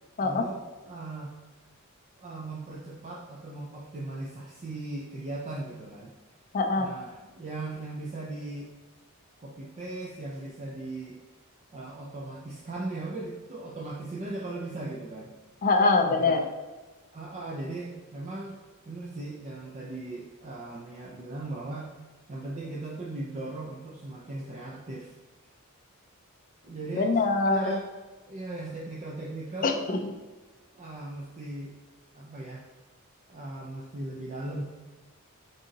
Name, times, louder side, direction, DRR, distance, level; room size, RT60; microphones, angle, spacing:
voice 1, 0.2-1.3 2.2-6.1 6.8-8.7 9.4-11.2 11.7-15.3 16.2-16.4 17.1-18.6 18.9-21.9 22.3-25.2 26.6-27.1 27.5-27.9 28.3-29.8 30.7-31.7 32.1-32.6 33.3-34.6, right 2 dB, 30° right, -3 dB, 0.4 m, -38 dB
voice 2, 6.5-6.9 15.6-16.5 26.9-27.8 29.6-30.1, left 3 dB, 40° left, 4 dB, 0.4 m, -24 dB
3.8 x 2.7 x 3.8 m, 1.2 s
head